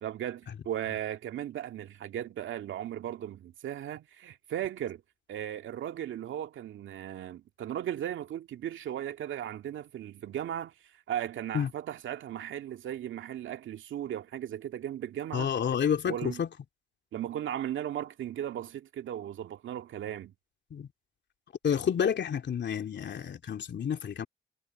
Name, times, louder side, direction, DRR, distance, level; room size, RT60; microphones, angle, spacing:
voice 1, 0.0-5.0 5.3-15.5 16.0-16.4 17.1-20.3, right 11 dB, 70° right, 2.1 m, -36 dB
voice 2, 15.3-16.5 20.7-20.9 21.6-24.3, left 8 dB, 60° left, 2.9 m, -29 dB
hypercardioid pair, 45°, 21 cm